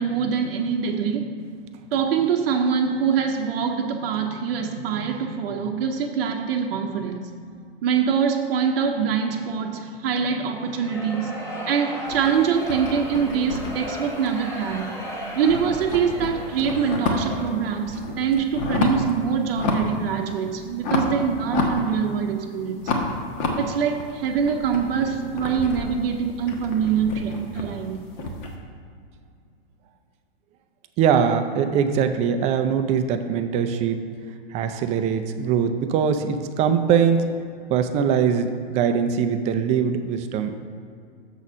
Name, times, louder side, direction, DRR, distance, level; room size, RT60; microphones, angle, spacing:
voice 1, 0.0-1.4 1.9-7.3 7.8-14.9 15.4-22.9 23.6-28.0, right 7 dB, 65° right, 2 dB, 0.7 m, -24 dB
sound 1, 10.6-17.8, equal, 10° left, 1.2 m, -36 dB
sound 2, 12.1-14.9 15.2-17.5 17.8-19.1 19.5-20.0 20.3-22.4 22.8-28.5, left 3 dB, 45° left, 1.3 m, -29 dB
voice 2, 31.0-34.1 34.5-37.2 37.7-40.5, right 7 dB, 20° right, 8 dB, 0.4 m, -22 dB
7.1 x 4.1 x 6.1 m, 2.2 s
hypercardioid pair, 125°, 31 cm